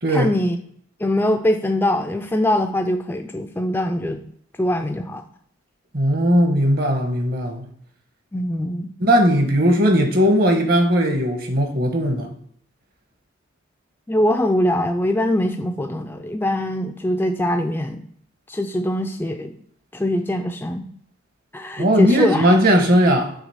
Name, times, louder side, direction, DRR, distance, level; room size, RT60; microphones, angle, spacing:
voice 1, 0.1-0.6 1.0-4.2 4.6-5.2 8.3-8.9 14.1-18.1 18.5-19.6 19.9-20.9 21.5-22.5, left 1 dB, 10° left, 0.3 m, -22 dB
voice 2, 5.9-7.6 9.0-12.3 21.8-23.3, equal, 45° right, 1.0 m, -18 dB
6.1 x 3.3 x 5.5 m
head